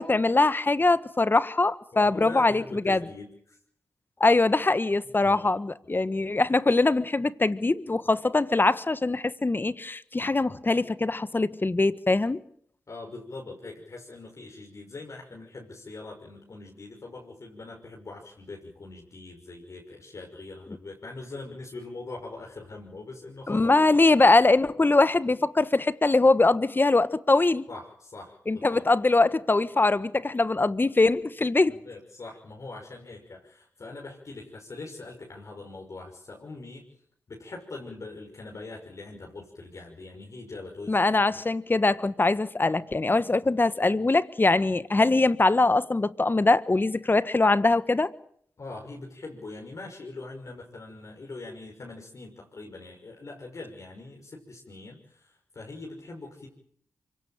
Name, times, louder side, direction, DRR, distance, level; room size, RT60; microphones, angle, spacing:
voice 1, 0.0-3.0 4.2-12.4 23.5-27.6 28.5-31.7 40.9-48.1, left 3 dB, 35° left, 1.4 m, -22 dB
voice 2, 1.9-3.6 5.2-5.5 12.9-23.7 27.7-28.9 31.7-36.8 37.3-41.0 41.3-41.4 48.6-56.5, left 3 dB, 55° left, 6.1 m, -42 dB
24.5 x 17.5 x 9.1 m
supercardioid pair, 40°, 6 cm